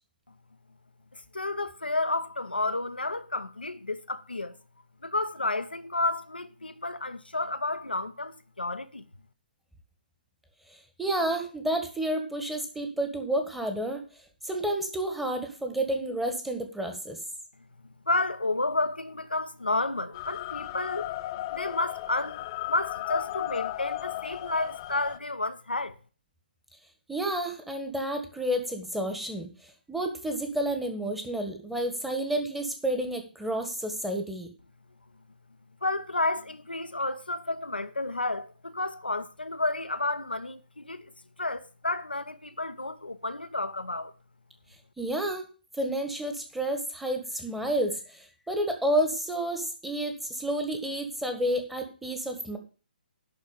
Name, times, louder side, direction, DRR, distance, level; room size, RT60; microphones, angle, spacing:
voice 1, 1.1-4.6 5.0-9.0 17.8-26.0 35.8-41.1 41.4-44.1, left 2 dB, 90° left, 1.0 m, -31 dB
voice 2, 11.0-14.0 14.4-17.2 27.1-34.5 45.0-45.4 45.8-52.6, right 1 dB, 5° right, 1.7 m, -30 dB
sound 1, 20.1-25.2, left 15 dB, 30° left, 0.5 m, -35 dB
11.0 x 4.3 x 7.3 m
figure-of-eight pair, 135°, 5 cm